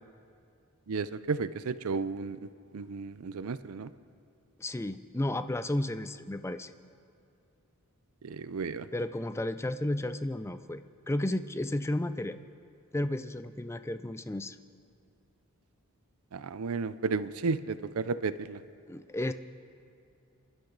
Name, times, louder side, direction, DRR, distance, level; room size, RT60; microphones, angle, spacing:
voice 1, 0.9-2.4 2.7-3.9 8.2-8.9 16.3-18.6, right 4 dB, 75° right, 14 dB, 0.5 m, -33 dB
voice 2, 4.6-6.7 8.9-10.8 11.1-12.4 12.9-14.6 18.9-19.3, left 1 dB, 10° left, 11 dB, 0.4 m, -32 dB
28.0 x 12.0 x 4.0 m, 2.4 s
head